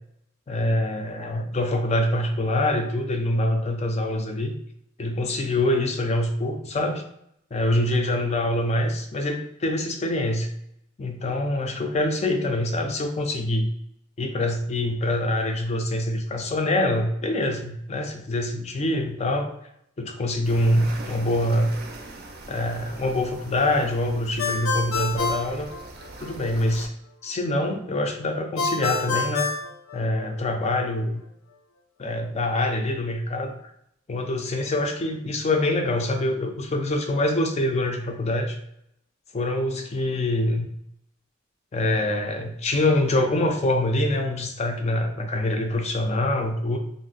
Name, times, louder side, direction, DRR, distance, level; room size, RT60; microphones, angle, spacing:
voice 1, 0.5-4.5 5.0-7.0 7.5-10.5 11.0-13.7 14.2-19.5 20.0-21.8 22.5-25.7 26.2-26.9 27.2-29.5 29.9-31.2 32.0-33.5 34.1-38.6 39.3-40.7 41.7-46.8, left 1 dB, 35° left, 4 dB, 0.4 m, -25 dB
sound 1, 20.4-26.9, right 2 dB, 50° right, 0.5 m, -42 dB
Ringtone, 24.4-26.3 28.6-30.5, left 4 dB, 85° left, 0.5 m, -28 dB
2.5 x 2.1 x 3.8 m, 0.77 s
head